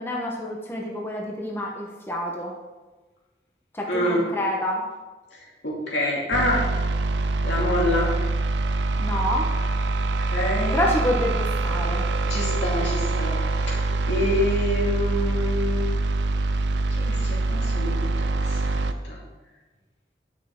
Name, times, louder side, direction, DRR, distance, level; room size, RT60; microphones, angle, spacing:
voice 1, 0.0-2.5 3.7-4.8 9.0-9.5 10.7-12.0, left 1 dB, 15° left, -2 dB, 1.0 m, -27 dB
voice 2, 3.9-4.2 5.3-6.6 7.4-8.1 10.2-10.8 12.3-15.9 17.0-19.2, left 1 dB, 90° left, -4 dB, 2.6 m, -27 dB
sound 1, 6.3-18.9, right 3 dB, 90° right, 0.5 m, -24 dB
10.0 x 6.0 x 3.7 m, 1.2 s
head